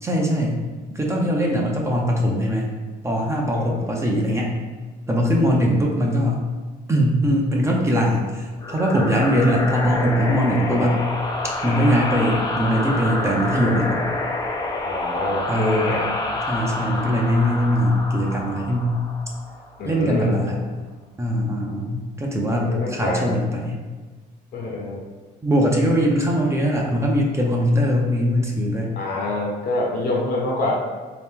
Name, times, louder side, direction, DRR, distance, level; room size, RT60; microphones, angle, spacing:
voice 1, 0.0-0.6 0.9-2.8 3.0-4.6 5.1-6.4 6.9-11.0 11.6-14.0 15.5-16.0 16.5-19.0 19.8-20.6 21.2-23.8 25.4-28.9, equal, 15° right, -1 dB, 0.6 m, -21 dB
voice 2, 3.5-3.9 5.5-5.6 14.7-16.1 19.8-20.3 22.5-23.3 24.5-25.0 29.0-30.7, left 2 dB, 65° left, -2 dB, 1.2 m, -26 dB
sound 1, 8.6-19.9, left 2 dB, 25° left, 0.5 m, -28 dB
3.7 x 2.9 x 3.7 m, 1.3 s
cardioid pair, 110°, 17 cm